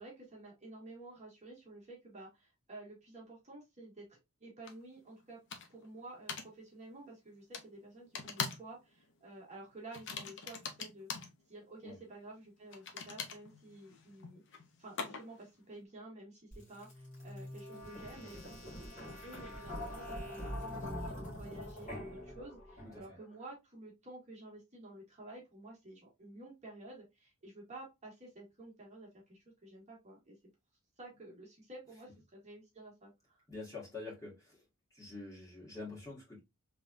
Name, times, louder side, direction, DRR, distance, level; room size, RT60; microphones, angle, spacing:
voice 1, 0.0-5.4 5.7-30.4 31.0-33.4, right 2 dB, 30° right, 1.4 m, -52 dB
sound 1, 4.7-4.8 5.5-5.9 6.3-6.5 7.5-7.7 8.1-8.7 9.0-9.3 9.9-11.3 12.7-15.5, left 5 dB, 55° left, 0.7 m, -42 dB
sound 2, 16.5-23.2, left 1 dB, 35° left, 1.7 m, -44 dB
voice 2, 22.8-23.2 33.5-34.6 34.9-36.4, left 3 dB, 15° left, 1.8 m, -46 dB
3.4 x 3.3 x 2.6 m
head